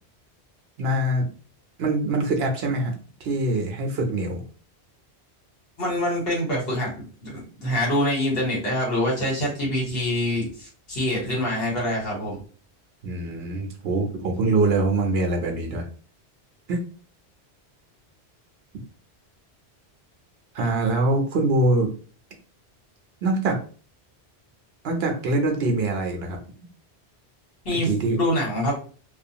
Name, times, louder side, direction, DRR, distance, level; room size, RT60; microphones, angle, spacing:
voice 1, 0.8-1.3 1.8-2.9 3.2-4.4 13.0-15.8 16.7-16.9 20.5-21.9 23.2-23.6 24.8-26.4 27.9-28.2, right 2 dB, 70° right, 3 dB, 0.8 m, -23 dB
voice 2, 5.8-12.4 27.6-27.9 28.2-28.8, left 1 dB, 65° left, -4 dB, 1.4 m, -25 dB
2.4 x 2.3 x 2.7 m, 0.39 s
omnidirectional pair, 1.1 m